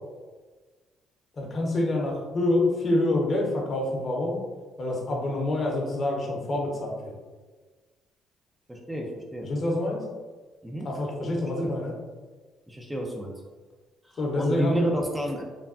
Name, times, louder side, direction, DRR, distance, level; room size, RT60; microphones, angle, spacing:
voice 1, 1.4-4.4 4.8-6.9 9.4-10.0 10.8-11.9 14.2-14.9, left 1 dB, 45° left, -1 dB, 0.8 m, -26 dB
voice 2, 8.7-9.5 10.6-10.9 11.4-11.7 12.7-13.3 14.1-15.4, right 1 dB, 10° right, 0 dB, 0.5 m, -30 dB
3.3 x 2.2 x 2.4 m, 1.3 s
supercardioid pair, 70°, 0 cm